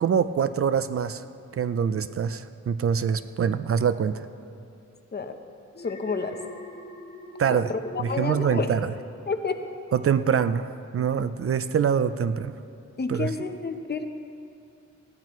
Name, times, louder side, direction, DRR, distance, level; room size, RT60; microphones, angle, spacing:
voice 1, 0.0-1.2 1.6-4.3 7.4-7.7 8.0-8.9 9.9-12.5 13.1-13.3, right 7 dB, 50° right, 12 dB, 0.4 m, -24 dB
Alarm, 5.7-9.1 9.4-9.8, right 1 dB, 60° left, 3.1 m, -42 dB
voice 2, 5.8-6.4 7.5-8.7 9.3-9.6 13.0-14.1, left 4 dB, 35° left, 6 dB, 0.8 m, -30 dB
19.5 x 15.5 x 3.1 m, 2.4 s
wide cardioid pair, 165°, 30 cm